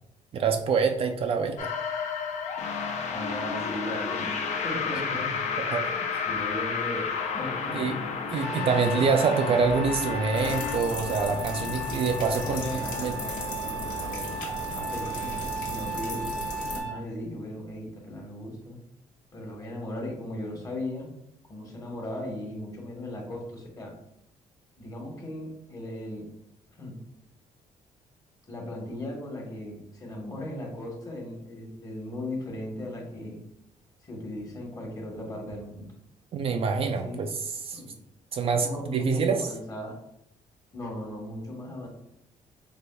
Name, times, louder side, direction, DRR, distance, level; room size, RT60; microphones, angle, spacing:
voice 1, 0.3-1.7 5.6-5.9 7.7-8.0 8.3-13.1 36.3-37.3 37.6-37.8 38.3-39.5, right 5 dB, 45° right, 5 dB, 0.3 m, -26 dB
sound 1, 1.6-10.8, left 5 dB, 60° left, 0.5 m, -31 dB
voice 2, 3.1-4.4 4.6-5.3 5.8-8.0 12.4-16.2 16.7-18.8 19.3-21.1 21.5-23.9 24.8-26.3 26.8-27.0 28.5-33.4 34.1-35.9 37.0-37.3 37.7-37.9 38.6-40.0 40.7-41.9, left 1 dB, 25° left, 0 dB, 1.1 m, -37 dB
Trumpet, 8.4-17.0, right 1 dB, 10° left, 0.7 m, -35 dB
sound 2, 10.3-16.8, left 3 dB, 85° left, 1.1 m, -36 dB
5.2 x 3.5 x 2.2 m, 0.78 s
cardioid pair, 140°, 14 cm